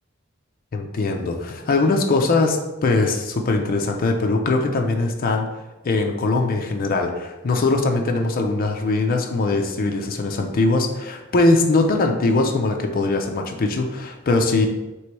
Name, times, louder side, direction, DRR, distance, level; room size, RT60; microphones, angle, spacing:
voice 1, 0.7-5.5 5.8-14.7, left 3 dB, 45° left, 3 dB, 0.4 m, -21 dB
3.1 x 3.0 x 4.5 m, 1.1 s
head